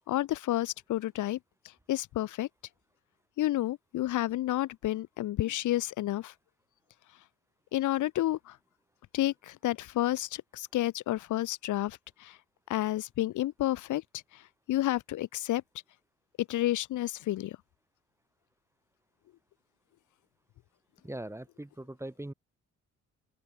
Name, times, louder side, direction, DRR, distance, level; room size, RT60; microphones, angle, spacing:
voice 1, 0.1-1.4 1.9-2.5 3.4-6.3 7.7-8.6 9.1-12.4 12.7-14.0 14.3-14.4 14.7-15.6 16.4-17.6, left 14 dB, 80° left, 1.4 m, -30 dB
voice 2, 21.0-22.3, right 1 dB, 10° right, 3.0 m, -41 dB
open air
cardioid pair, 90°, 30 cm